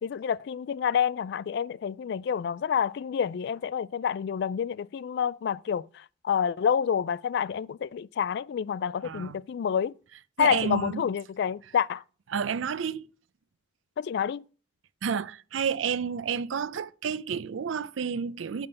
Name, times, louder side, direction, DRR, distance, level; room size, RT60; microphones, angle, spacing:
voice 1, 0.0-9.9 10.4-12.0 14.0-14.4, left 7 dB, 60° left, 0.3 m, -28 dB
voice 2, 9.0-9.4 10.4-11.0 12.3-13.1 15.0-18.7, right 6 dB, 85° right, 0.5 m, -30 dB
10.5 x 3.6 x 6.9 m
head